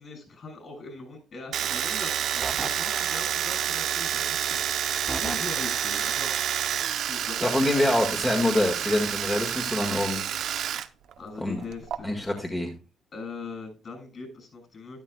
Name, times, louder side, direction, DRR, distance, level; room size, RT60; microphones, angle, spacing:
voice 1, 0.0-7.9 10.1-10.5 11.2-12.1 13.1-15.0, left 3 dB, 50° left, 5 dB, 6.5 m, -41 dB
Domestic sounds home sounds, 1.5-10.9 11.1-12.0, right 10 dB, 75° right, 0.7 m, -29 dB
sound 1, 2.4-3.7 5.1-6.2, right 3 dB, 25° right, 0.6 m, -36 dB
voice 2, 7.4-10.2 11.4-11.6 12.0-12.7, left 1 dB, 15° left, 1 dB, 1.7 m, -25 dB
12.5 x 11.0 x 2.3 m, 0.33 s
cardioid pair, 90°, 0 cm